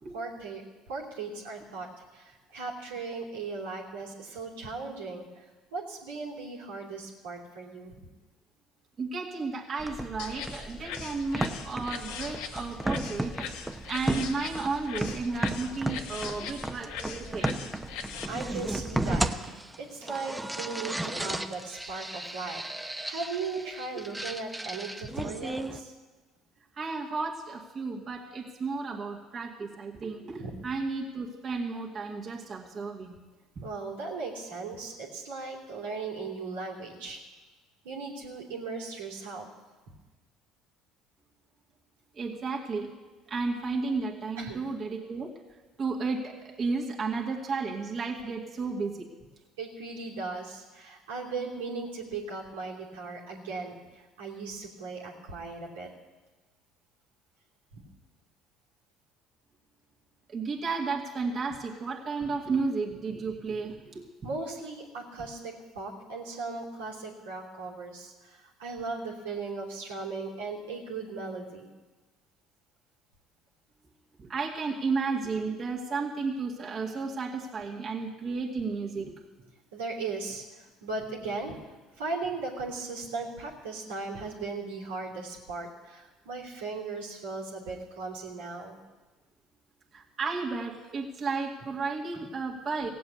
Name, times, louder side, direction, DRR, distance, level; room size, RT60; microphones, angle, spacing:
voice 1, 0.1-0.6 0.9-7.9 18.3-25.9 30.4-30.6 33.6-37.2 37.8-39.5 44.4-44.6 49.6-55.9 57.7-57.8 64.2-71.7 79.7-88.8, right 3 dB, 90° right, -4 dB, 2.8 m, -37 dB
voice 2, 9.0-17.7 26.8-33.2 33.6-33.7 42.1-42.9 43.3-45.4 45.8-49.1 60.3-64.1 74.2-79.2 89.9-92.9, right 4 dB, 45° right, -2 dB, 2.1 m, -33 dB
sound 1, 9.8-25.8, right 1 dB, 10° right, 0.9 m, -35 dB
sound 2, 10.2-18.3, left 7 dB, 80° left, 1.1 m, -40 dB
16.5 x 7.7 x 8.2 m, 1.2 s
hypercardioid pair, 75°, 0 cm